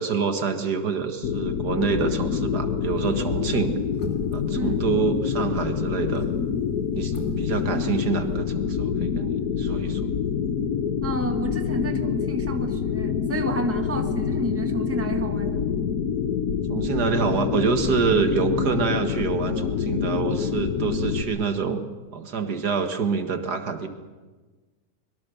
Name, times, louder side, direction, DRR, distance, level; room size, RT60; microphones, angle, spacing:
voice 1, 0.0-3.7 4.3-6.3 6.9-10.1 16.7-21.8 22.1-23.9, right 5 dB, 75° right, 7 dB, 2.2 m, -26 dB
sound 1, 1.2-21.2, left 7 dB, 65° left, 1.5 m, -26 dB
sound 2, 2.8-3.1 3.9-4.5 6.0-6.5 7.1-7.5 7.7-7.8, left 1 dB, 45° left, 3.0 m, -36 dB
voice 2, 4.5-4.9 11.0-15.6, right 2 dB, 10° right, 6 dB, 1.5 m, -31 dB
24.0 x 22.5 x 7.0 m, 1.3 s
omnidirectional pair, 1.8 m